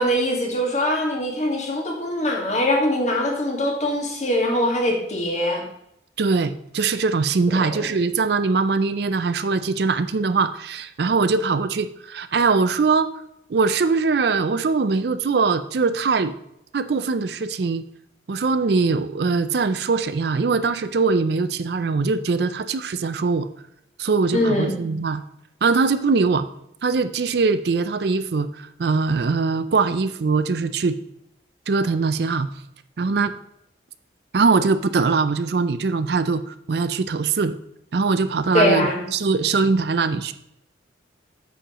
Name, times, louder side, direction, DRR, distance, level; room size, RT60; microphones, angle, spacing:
voice 1, 0.0-5.6 7.5-7.8 24.3-24.7 38.5-39.0, left 1 dB, 40° left, 0 dB, 1.8 m, -22 dB
voice 2, 6.2-13.1 13.5-16.3 16.7-17.8 18.3-23.5 24.0-25.2 25.6-26.5 26.8-31.0 31.7-32.5 33.0-33.4 34.3-37.6 37.9-40.3, right 4 dB, 60° right, 12 dB, 0.4 m, -22 dB
8.9 x 6.8 x 3.0 m, 0.77 s
head